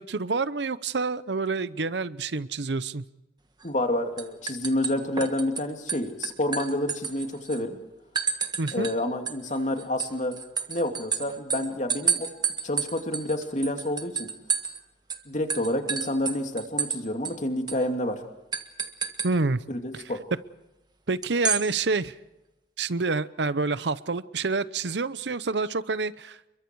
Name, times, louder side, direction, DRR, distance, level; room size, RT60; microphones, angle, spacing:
voice 1, 0.0-3.0 8.6-8.9 19.2-19.6 19.9-20.0 21.1-22.2 22.8-26.4, right 3 dB, 75° right, 16 dB, 0.8 m, -28 dB
voice 2, 3.6-7.8 8.7-10.4 10.7-12.3 12.6-14.3 15.2-18.2 19.7-20.2, left 1 dB, 45° left, 4 dB, 2.8 m, -29 dB
sound 1, 3.6-3.9 4.2-5.6 5.9-7.6 8.2-9.0 9.3-14.8 15.1-15.2 15.5-17.0 17.2-17.3 17.7-17.8 18.5-19.3 21.2-21.6, right 6 dB, 25° right, 1.5 m, -30 dB
29.5 x 23.0 x 4.8 m, 0.98 s
head